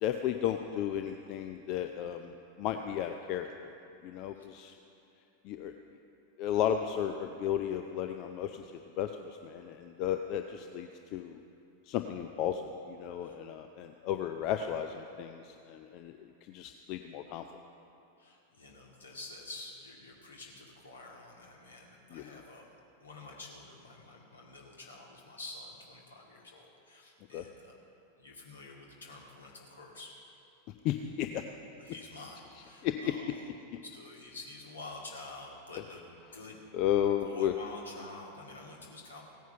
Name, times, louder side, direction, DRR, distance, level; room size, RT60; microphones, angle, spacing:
voice 1, 0.0-3.7 4.0-4.7 5.4-5.7 6.4-8.7 9.0-11.4 11.9-16.1 16.5-17.4 22.1-22.4 27.3-27.4 30.8-31.4 32.8-33.1 36.7-37.5, left 10 dB, 40° left, 7 dB, 0.6 m, -34 dB
voice 2, 18.2-22.6 23.0-27.7 28.2-30.1 31.8-33.4 33.8-36.0 36.3-36.6 37.2-39.2, left 2 dB, 70° left, -1 dB, 2.4 m, -48 dB
16.5 x 9.4 x 5.6 m, 2.8 s
figure-of-eight pair, 90°, 0 cm